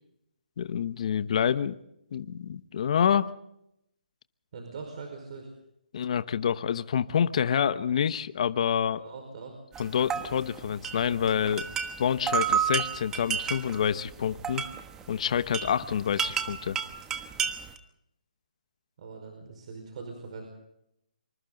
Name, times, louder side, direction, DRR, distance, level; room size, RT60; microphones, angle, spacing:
voice 1, 0.6-1.7 2.1-3.3 5.9-9.0 9.8-11.7 12.0-14.6 15.1-16.8, left 8 dB, 45° left, 13 dB, 1.0 m, -27 dB
voice 2, 4.5-5.5 9.0-9.6 19.0-20.5, right 4 dB, 45° right, 3 dB, 5.1 m, -42 dB
sound 1, 9.7-17.8, right 8 dB, 10° right, 1.2 m, -32 dB
26.0 x 25.5 x 4.0 m, 0.79 s
hypercardioid pair, 160°, 5 cm